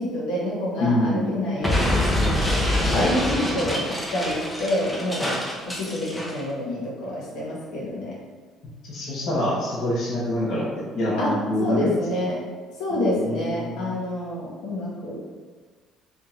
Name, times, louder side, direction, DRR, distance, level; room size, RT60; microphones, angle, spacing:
voice 1, 0.0-2.0 3.0-5.4 5.7-8.2 11.2-12.4 12.8-15.1, left 1 dB, 75° left, -5 dB, 1.3 m, -27 dB
voice 2, 0.8-1.3 2.9-3.1 8.9-11.9 12.9-14.0, left 1 dB, 45° left, -8 dB, 0.9 m, -25 dB
Explosion, 1.6-6.4, left 1 dB, 5° left, 0.5 m, -25 dB
3.6 x 2.4 x 4.2 m, 1.4 s
cardioid pair, 170°, 0 cm